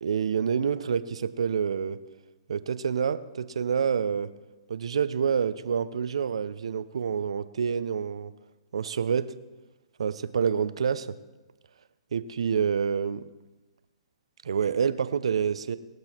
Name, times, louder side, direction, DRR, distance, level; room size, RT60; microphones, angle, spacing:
voice 1, 0.0-2.0 2.5-4.3 4.7-8.3 8.7-9.4 10.0-11.1 12.1-13.3 14.4-15.8, right 7 dB, 70° right, 14 dB, 0.7 m, -27 dB
21.5 x 8.0 x 4.5 m, 1.2 s
figure-of-eight pair, 125°, 3 cm